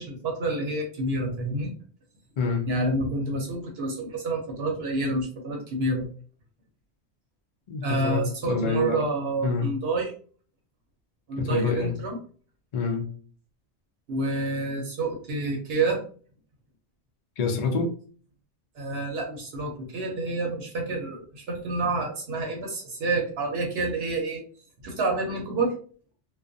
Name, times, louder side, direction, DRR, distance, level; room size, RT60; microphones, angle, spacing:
voice 1, 0.0-1.7 2.7-6.1 7.8-10.1 11.3-12.2 14.1-16.0 18.8-24.4 24.8-25.8, right 2 dB, 70° right, 1 dB, 0.8 m, -28 dB
voice 2, 2.4-2.7 7.7-9.0 9.4-9.7 11.4-11.9 12.7-13.1 17.4-17.9, left 4 dB, 55° left, 3 dB, 0.4 m, -26 dB
2.3 x 2.2 x 2.5 m, 0.43 s
omnidirectional pair, 1.1 m